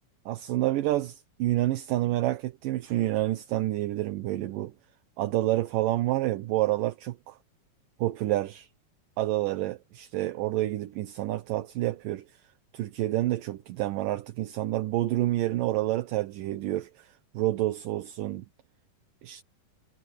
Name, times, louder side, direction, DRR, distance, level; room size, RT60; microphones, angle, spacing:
voice 1, 0.3-4.7 5.2-7.3 8.0-8.7 9.2-12.2 12.7-18.4 19.2-19.4, right 15 dB, 75° right, 2.5 m, -28 dB
omnidirectional pair, 4.1 m